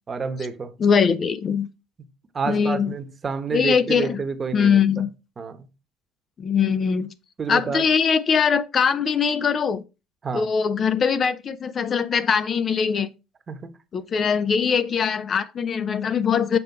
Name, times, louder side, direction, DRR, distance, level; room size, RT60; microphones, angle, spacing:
voice 1, 0.1-0.7 2.3-4.8 5.4-5.7 7.4-7.9 10.2-10.5 13.5-13.7, right 5 dB, 30° right, 1.0 m, -29 dB
voice 2, 0.8-1.7 2.5-2.9 3.5-4.2 4.5-5.1 6.4-7.1 7.5-9.8 10.3-13.1 13.9-16.6, left 6 dB, 40° left, 0.5 m, -21 dB
7.0 x 3.4 x 4.6 m
supercardioid pair, 95°, 0 cm